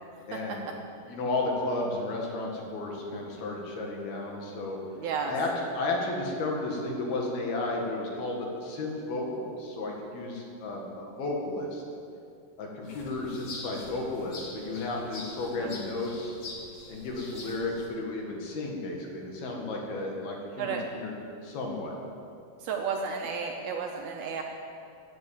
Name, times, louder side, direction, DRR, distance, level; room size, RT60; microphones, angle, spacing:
voice 1, 0.3-0.6 1.1-4.8 5.3-5.5 5.7-11.8 12.6-16.4 16.9-21.1 21.4-21.9, left 2 dB, 65° left, -1 dB, 3.6 m, -33 dB
voice 2, 5.0-5.3 15.6-15.7 20.6-20.8 22.6-24.4, right 6 dB, 75° right, 2 dB, 2.4 m, -33 dB
sound 1, 12.8-17.9, left 2 dB, 45° left, 2.3 m, -44 dB
15.0 x 8.9 x 8.8 m, 2.5 s
omnidirectional pair, 5.1 m